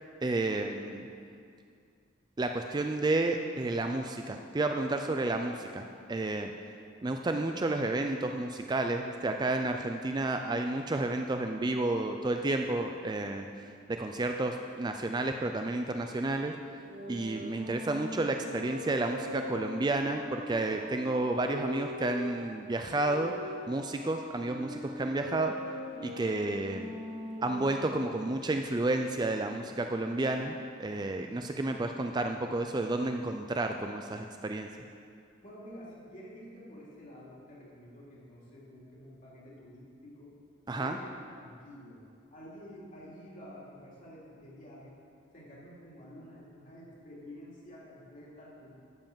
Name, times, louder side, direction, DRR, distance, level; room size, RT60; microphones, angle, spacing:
voice 1, 0.2-1.1 2.4-6.5 7.0-16.5 17.1-23.3 23.7-25.5 26.0-26.9 27.4-34.7 40.7-41.0, right 2 dB, 20° right, 5 dB, 0.3 m, -31 dB
sound 1, 16.8-22.3 22.9-28.1, left 1 dB, 60° right, 2.4 m, -42 dB
voice 2, 35.4-40.3 40.7-42.0 42.3-44.9 45.3-48.7, equal, 40° left, -6 dB, 2.7 m, -49 dB
12.0 x 5.4 x 7.3 m, 2.3 s
head